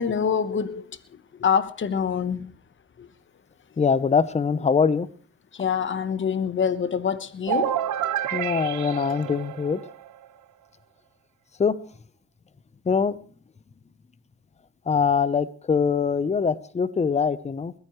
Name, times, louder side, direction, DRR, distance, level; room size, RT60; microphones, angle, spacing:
voice 1, 0.0-2.5 3.0-3.1 5.5-7.8, left 7 dB, 40° left, 1.1 m, -26 dB
voice 2, 3.8-5.1 8.3-9.8 11.6-11.8 12.8-13.2 14.9-17.7, left 6 dB, 20° left, 0.7 m, -23 dB
sound 1, 7.5-10.3, right 10 dB, 75° right, 1.0 m, -29 dB
21.0 x 14.5 x 3.1 m
cardioid pair, 90°, 30 cm